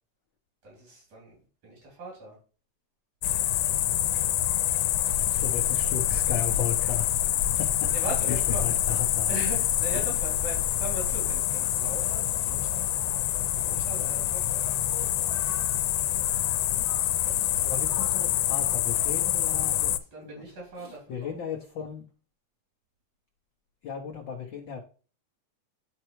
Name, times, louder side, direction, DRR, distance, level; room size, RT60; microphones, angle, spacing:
voice 1, 0.6-2.4 7.8-9.0 9.3-12.9 13.5-14.9 17.2-18.1 19.5-21.5, right 2 dB, 75° right, -3 dB, 4.7 m, -40 dB
sound 1, 3.2-20.0, left 12 dB, 85° left, 2.0 m, -26 dB
voice 2, 5.1-7.9 8.2-9.3 17.6-19.9 20.2-20.4 20.8-22.0 23.8-24.8, left 7 dB, 70° left, 3 dB, 1.1 m, -35 dB
10.5 x 4.5 x 3.0 m, 0.38 s
omnidirectional pair, 3.3 m